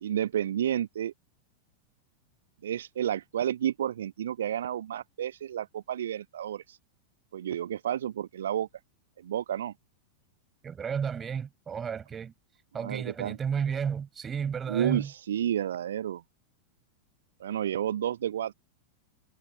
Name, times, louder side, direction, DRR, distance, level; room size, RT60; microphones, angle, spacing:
voice 1, 0.0-1.1 2.6-6.8 7.3-8.7 9.2-9.7 12.8-13.4 14.7-16.2 17.4-18.5, right 10 dB, 60° right, 1.0 m, -31 dB
voice 2, 10.6-12.3 12.7-15.1, right 7 dB, 20° right, 7.3 m, -32 dB
figure-of-eight pair, 90°, 0 cm